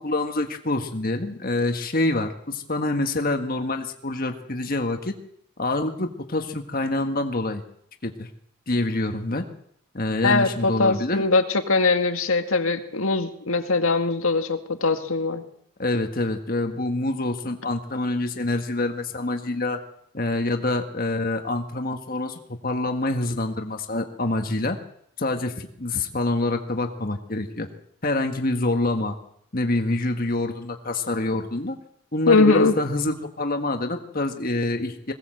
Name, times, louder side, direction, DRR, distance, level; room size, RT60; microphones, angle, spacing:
voice 1, 0.0-5.1 5.6-7.6 8.0-8.3 8.7-9.4 9.9-11.2 15.8-19.8 20.1-24.8 25.2-27.7 28.0-29.2 29.5-31.8 32.1-35.1, left 2 dB, 40° left, 5 dB, 1.6 m, -26 dB
voice 2, 10.2-15.4 32.3-32.7, left 3 dB, 70° left, 7 dB, 1.9 m, -21 dB
21.0 x 18.0 x 7.8 m, 0.69 s
head